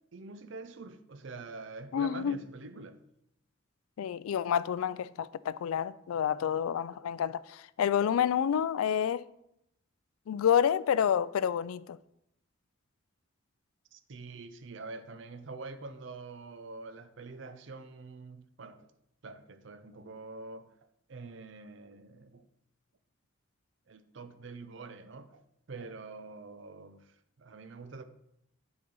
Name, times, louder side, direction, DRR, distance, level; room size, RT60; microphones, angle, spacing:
voice 1, 0.1-3.0 13.9-18.9 19.2-20.7 21.1-22.5 23.9-25.4 25.7-28.0, right 3 dB, 60° right, 0.6 m, -45 dB
voice 2, 1.9-2.4 4.0-9.2 10.3-12.0, left 8 dB, 90° left, 0.3 m, -29 dB
8.6 x 4.0 x 5.3 m
head